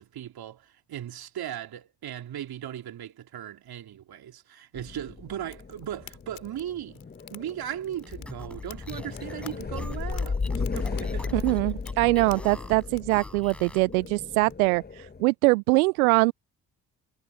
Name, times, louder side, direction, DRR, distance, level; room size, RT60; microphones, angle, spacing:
voice 1, 0.0-7.0 7.3-10.4 10.7-11.3, right 11 dB, 60° right, 3.3 m, -37 dB
sound 1, 4.7-15.2, left 4 dB, 20° left, 1.4 m, -35 dB
Fire, 5.5-14.5, left 19 dB, 85° left, 3.2 m, -52 dB
sound 2, 8.0-13.9, equal, 5° left, 7.5 m, -46 dB
voice 2, 11.3-16.3, right 25 dB, 85° right, 0.6 m, -23 dB
hypercardioid pair, 50°, 42 cm